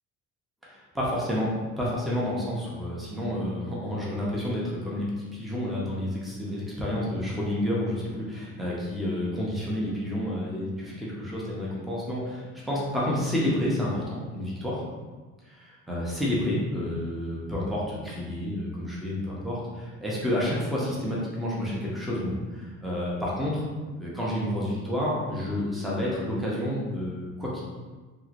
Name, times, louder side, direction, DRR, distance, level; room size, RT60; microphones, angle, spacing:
voice 1, 0.7-5.1 5.3-14.8 15.5-23.6 24.0-27.6, left 1 dB, ahead, -6 dB, 0.5 m, -30 dB
3.0 x 2.9 x 2.4 m, 1.3 s
cardioid pair, 160°, 33 cm